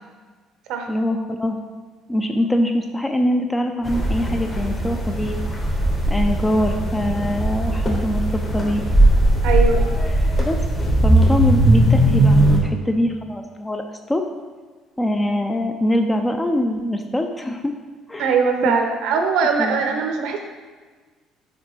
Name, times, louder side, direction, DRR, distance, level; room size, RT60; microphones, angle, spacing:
voice 1, 0.9-1.6 2.1-5.4 6.1-8.8 10.4-10.6 11.0-13.8 14.1-14.2 15.0-17.7 18.1-18.4 18.6-18.8 19.6-19.8, left 1 dB, 10° left, 5 dB, 0.4 m, -23 dB
sound 1, 3.9-12.6, right 1 dB, 25° left, 1.0 m, -18 dB
voice 2, 9.4-9.8 18.2-20.4, right 5 dB, 80° right, 4 dB, 0.8 m, -21 dB
5.1 x 4.1 x 4.6 m, 1.4 s
cardioid pair, 120°, 0 cm